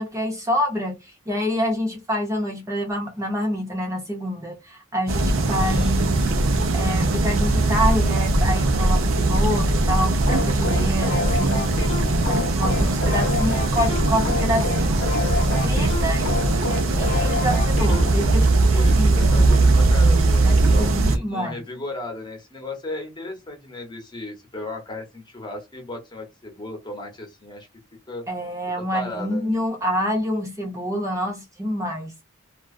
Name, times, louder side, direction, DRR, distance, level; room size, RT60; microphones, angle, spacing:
voice 1, 0.0-6.2 6.7-11.8 12.3-15.0 15.6-16.3 16.6-19.5 20.4-21.5 28.3-32.1, equal, 15° right, 0.6 m, -27 dB
sound 1, 5.1-21.2, right 2 dB, 90° right, 0.6 m, -20 dB
voice 2, 5.6-6.4 12.6-13.2 18.7-27.7 28.1-28.2 28.8-29.5, left 1 dB, 20° left, 1.0 m, -36 dB
sound 2, 10.3-18.3, left 4 dB, 60° left, 0.7 m, -30 dB
2.5 x 2.3 x 2.3 m
head